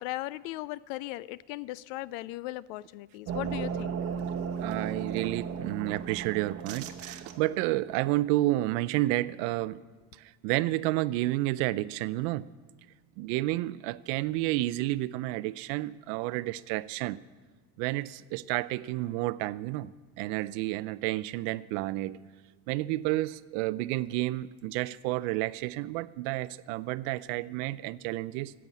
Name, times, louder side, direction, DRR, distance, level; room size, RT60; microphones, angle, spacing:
voice 1, 0.0-4.0, left 17 dB, 65° left, 20 dB, 0.5 m, -37 dB
sound 1, 3.3-7.8, right 6 dB, 35° right, 0.9 m, -35 dB
voice 2, 4.6-9.8 10.4-12.5 13.2-17.2 17.8-22.2 22.7-28.5, right 17 dB, 65° right, 18 dB, 0.5 m, -30 dB
10.5 x 7.7 x 8.2 m, 1.4 s
supercardioid pair, 135°, 41 cm